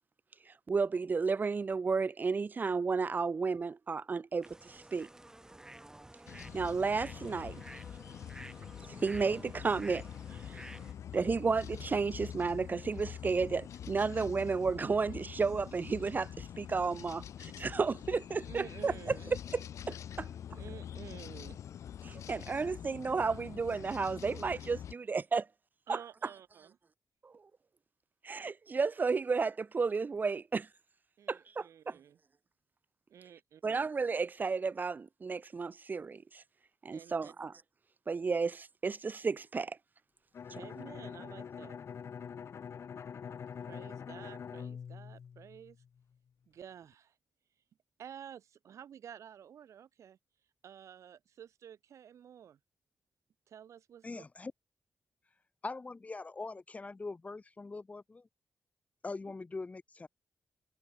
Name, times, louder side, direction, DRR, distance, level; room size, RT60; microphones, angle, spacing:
voice 1, 0.7-5.1 6.5-7.6 8.9-10.6 11.1-19.2 19.9-20.3 22.0-25.5 25.9-26.0 27.2-27.3 28.2-30.7 31.3-32.0 33.6-36.4 36.8-37.5 38.1-39.8, right 4 dB, 40° right, 0.6 m, -33 dB
sound 1, 4.4-10.9, right 1 dB, 10° right, 3.8 m, -51 dB
sound 2, 6.3-24.9, left 9 dB, 90° left, 1.0 m, -45 dB
voice 2, 18.4-19.3 20.5-21.6 25.9-26.8 31.2-32.2 33.1-33.9 36.9-37.3 40.5-41.8 43.6-45.8 46.5-47.1 48.0-50.2 50.6-52.6 53.5-54.2, right 9 dB, 85° right, 3.3 m, -51 dB
Bowed string instrument, 40.3-46.0, left 7 dB, 65° left, 1.9 m, -45 dB
voice 3, 54.0-54.5 55.6-58.3 59.0-60.1, left 3 dB, 30° left, 2.8 m, -42 dB
wide cardioid pair, 105°, 5 cm